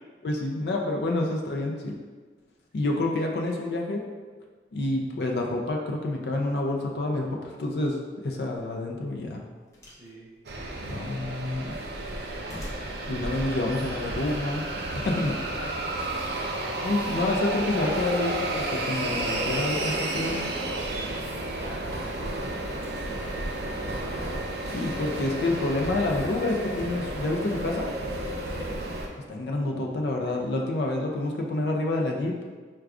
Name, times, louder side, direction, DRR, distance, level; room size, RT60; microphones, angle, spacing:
voice 1, 0.2-2.0 2.7-4.0 4.7-9.4 10.9-11.7 13.1-15.4 16.8-20.5 24.7-27.9 29.2-32.4, left 2 dB, 60° left, 1 dB, 0.4 m, -28 dB
sound 1, 9.7-10.1 10.5-11.2 11.6-13.1 13.9-14.0, equal, 15° left, 0.6 m, -44 dB
voice 2, 9.9-10.3 15.5-15.8 21.5-22.5 22.9-24.1 28.4-28.8 30.2-30.5, right 1 dB, 15° right, -9 dB, 0.9 m, -46 dB
sound 2, 10.5-29.1, right 1 dB, 60° right, 0.4 m, -32 dB
4.6 x 2.2 x 2.4 m, 1.4 s
head